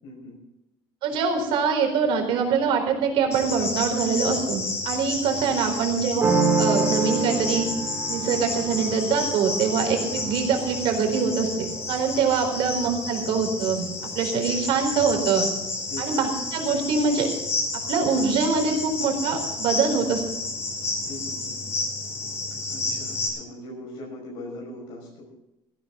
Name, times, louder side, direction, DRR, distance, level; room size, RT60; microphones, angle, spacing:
voice 1, 0.0-0.4 5.4-5.8 15.9-16.0 21.1-21.6 22.7-25.3, left 1 dB, 70° left, -2 dB, 5.9 m, -40 dB
voice 2, 1.0-6.2 6.6-7.7 8.1-11.5 11.9-13.9 14.2-15.5 16.0-17.3 17.9-20.2, right 5 dB, 60° right, 3 dB, 4.3 m, -24 dB
Cricket, 3.3-23.3, left 3 dB, 30° left, 4.9 m, -31 dB
sound 1, 6.2-11.8, right 4 dB, 25° right, 2.3 m, -27 dB
16.5 x 16.0 x 3.9 m, 0.90 s
cardioid pair, 165°, 10 cm